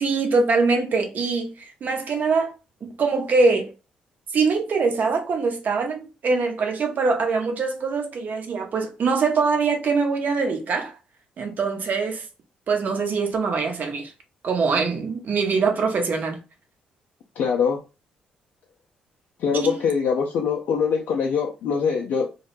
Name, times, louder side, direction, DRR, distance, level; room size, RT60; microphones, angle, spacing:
voice 1, 0.0-2.5 2.8-3.7 4.3-10.9 11.4-12.2 12.7-14.1 14.4-16.4 19.5-19.8, right 4 dB, 50° right, 0.7 m, -23 dB
voice 2, 17.4-17.8 19.4-22.3, left 6 dB, 65° left, 0.4 m, -23 dB
2.2 x 2.0 x 3.0 m
hypercardioid pair, 45°, 4 cm